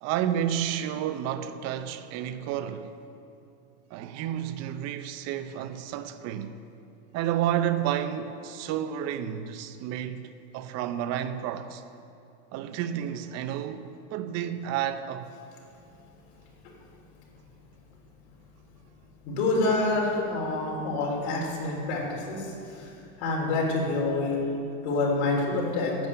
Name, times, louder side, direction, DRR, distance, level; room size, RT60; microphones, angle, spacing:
voice 1, 0.0-2.9 3.9-6.6 7.1-11.8 12.5-15.3, right 10 dB, 50° right, 0.7 m, -31 dB
voice 2, 19.2-22.9 23.2-24.4 24.8-26.0, left 2 dB, 80° left, 3.7 m, -27 dB
10.5 x 8.4 x 8.5 m
supercardioid pair, 145°, 34 cm